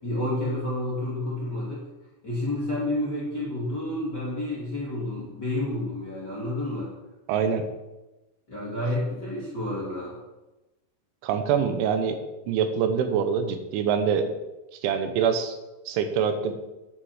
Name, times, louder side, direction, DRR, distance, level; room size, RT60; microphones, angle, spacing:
voice 1, 0.0-1.9 2.2-6.9 8.5-10.2, left 1 dB, 30° left, -6 dB, 2.1 m, -30 dB
voice 2, 7.3-7.7 11.2-12.2 12.5-14.3 14.7-15.6 15.9-16.5, right 7 dB, 80° right, 8 dB, 3.2 m, -25 dB
9.9 x 6.7 x 7.3 m, 1.0 s
omnidirectional pair, 5.5 m